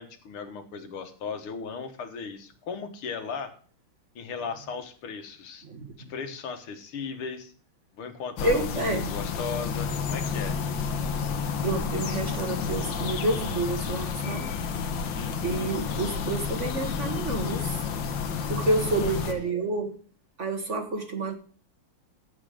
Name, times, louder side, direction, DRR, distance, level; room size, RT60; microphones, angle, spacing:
voice 1, 0.0-3.5 4.2-5.6 6.1-7.5 7.9-10.6 15.0-15.4 18.9-19.1, left 5 dB, 85° left, 8 dB, 2.3 m, -37 dB
voice 2, 5.6-6.1 8.4-9.1 11.6-14.5 15.4-17.8 18.5-20.0 20.4-21.3, right 2 dB, 45° right, 6 dB, 1.2 m, -29 dB
sound 1, 8.4-19.3, left 6 dB, 65° left, 1.7 m, -30 dB
14.5 x 5.0 x 5.0 m, 0.43 s
omnidirectional pair, 2.3 m